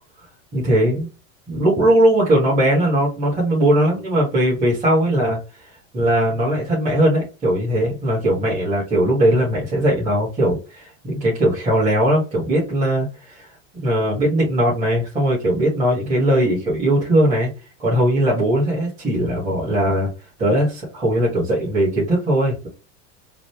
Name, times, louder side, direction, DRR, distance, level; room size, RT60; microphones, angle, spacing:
voice 1, 0.5-1.1 1.5-5.4 5.9-13.3 13.8-17.5 17.8-20.1 20.4-22.7, right 1 dB, 20° right, -7 dB, 2.2 m, -19 dB
4.1 x 2.8 x 3.3 m, 0.29 s
supercardioid pair, 160°, 38 cm